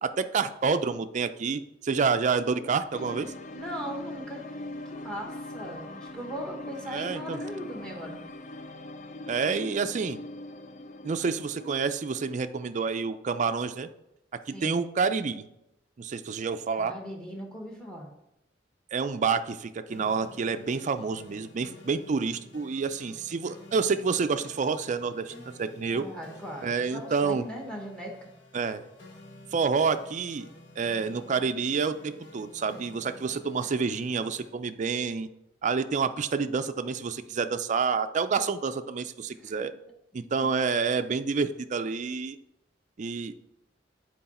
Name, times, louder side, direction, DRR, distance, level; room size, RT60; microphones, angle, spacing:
voice 1, 0.0-3.3 6.9-7.4 9.3-10.2 11.0-13.9 14.6-15.5 16.0-16.9 18.9-26.0 26.6-27.5 28.5-28.8 29.5-30.5 30.8-35.3 35.6-39.7 40.1-42.4 43.0-43.3, right 5 dB, 40° right, 10 dB, 0.4 m, -28 dB
sound 1, 2.9-11.7, left 1 dB, 40° left, 0.5 m, -41 dB
voice 2, 3.5-4.4 4.9-8.2 9.4-9.7 14.5-14.8 16.8-18.1 25.9-28.3 39.4-39.7 40.4-40.5, equal, 5° left, 1 dB, 1.1 m, -39 dB
sound 2, 19.9-34.5, left 1 dB, 80° left, 1.2 m, -51 dB
7.9 x 4.7 x 4.2 m, 0.83 s
head